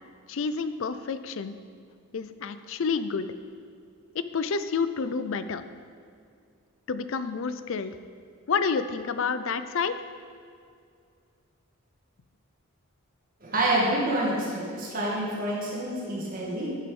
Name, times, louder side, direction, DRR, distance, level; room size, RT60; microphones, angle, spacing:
voice 1, 0.3-1.5 2.1-3.3 4.1-5.6 6.9-8.0 8.5-9.9, left 5 dB, 60° left, 12 dB, 0.4 m, -29 dB
voice 2, 13.4-16.8, right 1 dB, 40° right, -5 dB, 2.2 m, -27 dB
9.1 x 6.6 x 5.3 m, 2.3 s
head